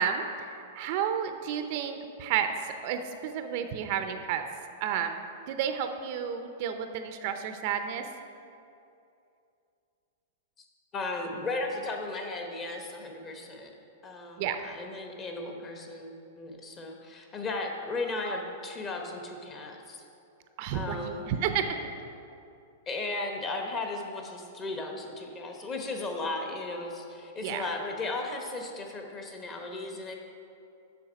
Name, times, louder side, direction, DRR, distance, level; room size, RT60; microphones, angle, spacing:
voice 1, 0.0-4.4 4.8-8.1 14.4-14.6 20.6-21.8 27.4-27.7, right 8 dB, 50° right, 7 dB, 0.5 m, -31 dB
voice 2, 10.9-13.7 14.0-20.0 20.7-21.4 22.9-30.2, left 2 dB, 25° left, 3 dB, 1.0 m, -36 dB
7.1 x 6.5 x 5.0 m, 2.6 s
supercardioid pair, 150°, 0 cm